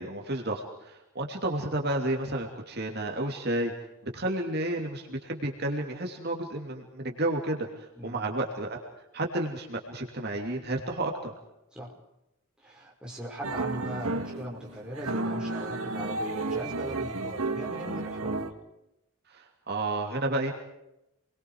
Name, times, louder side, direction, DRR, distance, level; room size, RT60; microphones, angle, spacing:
voice 1, 0.0-3.7 4.1-7.7 8.0-8.8 9.1-11.3 19.3-20.5, right 1 dB, 50° right, 1 dB, 2.9 m, -31 dB
voice 2, 12.6-18.4, equal, 5° right, -4 dB, 5.0 m, -40 dB
sound 1, 13.4-18.5, right 2 dB, 85° right, 2.1 m, -32 dB
29.5 x 22.0 x 4.8 m, 0.87 s
head